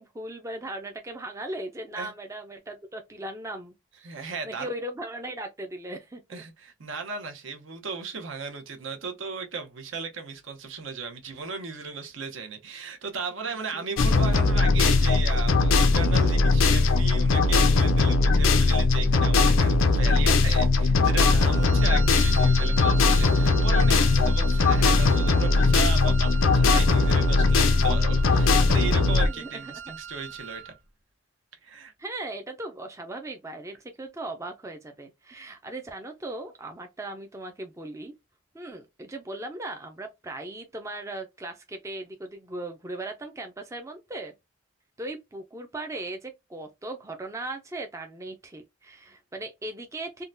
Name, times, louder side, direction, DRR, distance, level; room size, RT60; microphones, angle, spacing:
voice 1, 0.0-3.7 4.4-6.4 13.5-13.8 29.3-29.9 32.0-38.1 38.5-44.3 45.0-50.2, right 2 dB, 15° right, 0.4 m, -38 dB
voice 2, 4.0-4.7 6.3-30.7 31.6-31.9, right 5 dB, 75° right, 0.8 m, -36 dB
sound 1, 14.0-29.3, left 3 dB, 75° left, 0.4 m, -20 dB
Wind instrument woodwind instrument, 21.5-30.7, right 6 dB, 90° right, 1.2 m, -40 dB
3.7 x 2.2 x 2.5 m
head